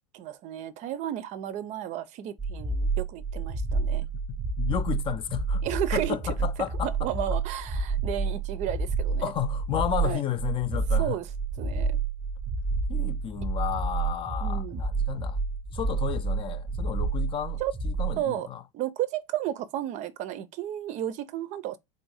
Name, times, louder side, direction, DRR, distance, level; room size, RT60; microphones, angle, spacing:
voice 1, 0.1-4.0 5.6-6.2 6.8-9.3 10.0-10.2 10.9-11.3 11.6-12.0 14.4-14.8 17.6-17.7 18.2-18.5 18.7-21.8, right 12 dB, 45° right, 0.5 m, -33 dB
sound 1, 2.4-18.2, right 4 dB, 15° right, 0.8 m, -29 dB
voice 2, 4.0-5.6 5.9-7.3 9.2-11.2 12.9-15.4 15.7-18.6, left 10 dB, 30° left, 0.5 m, -32 dB
4.0 x 2.6 x 4.7 m
supercardioid pair, 125°, 17 cm